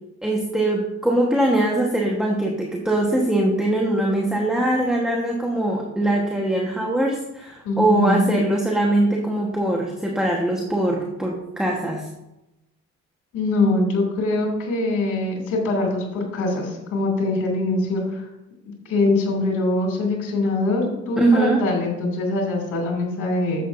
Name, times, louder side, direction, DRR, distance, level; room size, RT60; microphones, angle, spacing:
voice 1, 0.2-12.1 21.2-21.6, right 1 dB, ahead, -1 dB, 1.3 m, -22 dB
voice 2, 7.6-8.3 13.3-18.3 18.9-23.6, left 2 dB, 85° left, -1 dB, 2.6 m, -23 dB
11.0 x 7.6 x 2.6 m, 0.94 s
cardioid pair, 90°, 30 cm